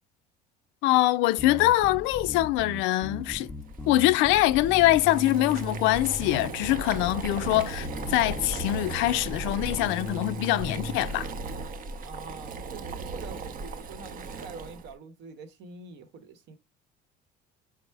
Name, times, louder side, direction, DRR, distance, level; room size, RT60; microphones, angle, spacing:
voice 1, 0.8-3.5 3.9-11.3, left 16 dB, 70° left, 0.4 m, -24 dB
Bass guitar, 1.4-11.0, left 1 dB, 5° left, 0.4 m, -38 dB
Boiling, 3.7-14.9, right 3 dB, 45° right, 0.6 m, -37 dB
voice 2, 12.0-16.6, right 4 dB, 60° right, 1.0 m, -45 dB
4.6 x 2.0 x 4.6 m
supercardioid pair, 95°, 20 cm